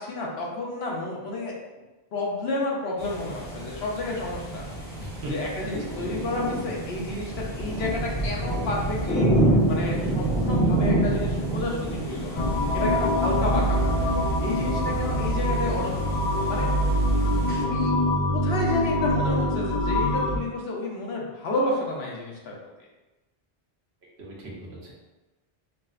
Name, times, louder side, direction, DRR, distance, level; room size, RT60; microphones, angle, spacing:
voice 1, 0.0-1.6 2.1-4.7 5.2-9.3 9.7-12.4 12.7-14.1 14.4-16.7 17.6-22.6, left 2 dB, 75° left, -3 dB, 1.0 m, -31 dB
sound 1, 3.0-17.6, right 1 dB, 10° left, 0.9 m, -28 dB
voice 2, 5.0-5.3 24.2-24.9, right 2 dB, 80° right, -3 dB, 1.1 m, -39 dB
sound 2, 12.4-20.4, equal, 50° left, 0.5 m, -24 dB
4.8 x 2.1 x 2.4 m, 1.1 s
omnidirectional pair, 1.1 m